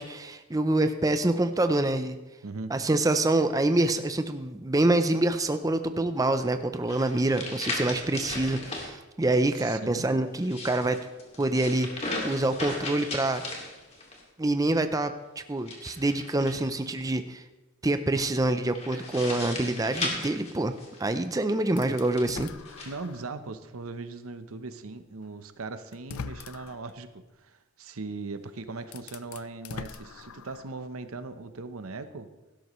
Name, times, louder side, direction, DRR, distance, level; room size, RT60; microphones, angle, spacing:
voice 1, 0.0-2.2 2.7-11.0 11.4-13.4 14.4-17.4 17.8-20.7 21.0-22.5, right 2 dB, 15° right, 9 dB, 0.5 m, -26 dB
sound 1, 6.9-8.9 10.3-14.2 15.6-16.9 18.7-21.2 21.9-22.9, left 2 dB, 30° left, 2.3 m, -36 dB
voice 2, 9.5-10.1 22.9-32.3, right 3 dB, 85° right, 10 dB, 0.8 m, -39 dB
sound 2, 21.8-23.4 23.9-24.0 25.2-25.3 25.9-26.9 28.3-28.4 28.8-30.8, left 5 dB, 90° left, 0.5 m, -42 dB
16.5 x 12.5 x 3.1 m, 1.1 s
head